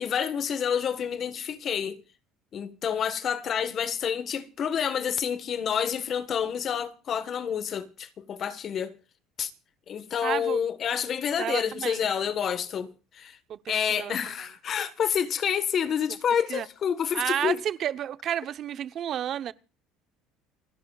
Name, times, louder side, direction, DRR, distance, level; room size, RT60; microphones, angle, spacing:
voice 1, 0.0-2.0 2.5-9.0 9.4-9.5 9.9-13.4 13.7-17.6, left 8 dB, 45° left, 1.4 m, -28 dB
voice 2, 10.2-10.6 11.4-12.0 13.5-14.1 16.5-16.7 17.1-19.5, right 10 dB, 50° right, 0.8 m, -31 dB
29.5 x 11.5 x 2.4 m
supercardioid pair, 100°, 0 cm